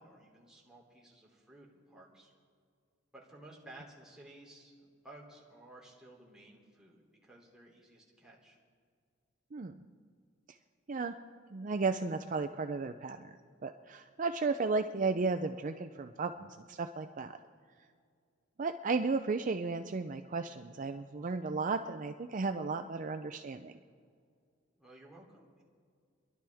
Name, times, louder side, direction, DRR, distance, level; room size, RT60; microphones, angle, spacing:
voice 1, 0.0-2.3 3.1-8.6 24.8-25.6, right 1 dB, 5° right, -4 dB, 3.0 m, -55 dB
voice 2, 11.5-13.3 13.6-17.4 18.6-23.7, right 4 dB, 40° right, 8 dB, 0.5 m, -34 dB
30.0 x 11.5 x 3.5 m, 2.2 s
head